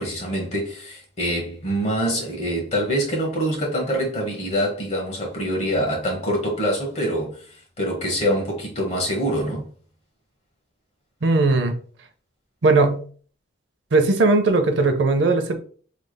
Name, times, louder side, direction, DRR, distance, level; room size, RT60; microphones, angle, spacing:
voice 1, 0.0-7.4 7.8-9.7, equal, 35° left, 1.1 m, -25 dB
voice 2, 11.2-11.7 12.6-13.0 13.9-15.6, right 3 dB, 70° right, 0.5 m, -18 dB
3.2 x 3.2 x 2.2 m
head